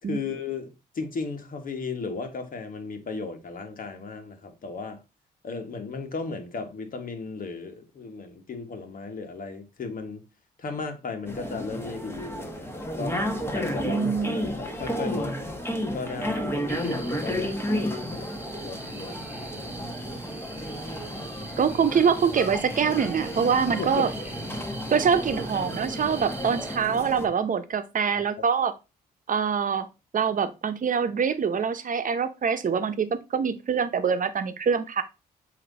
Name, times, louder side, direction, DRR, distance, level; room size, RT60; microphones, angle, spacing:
voice 1, 0.1-5.0 5.4-10.2 10.6-13.2 13.5-15.4 15.9-18.3 18.6-20.4 23.7-24.1 28.4-28.5, left 4 dB, 55° left, 1.5 m, -36 dB
sound 1, 11.3-27.3, equal, 15° left, 1.5 m, -32 dB
voice 2, 13.8-14.4 21.6-24.1 24.9-28.7 29.3-29.9 30.1-35.0, right 6 dB, 50° right, 1.0 m, -24 dB
sound 2, 16.7-26.8, right 2 dB, 10° right, 1.5 m, -41 dB
7.7 x 3.0 x 4.1 m
supercardioid pair, 60°, 17 cm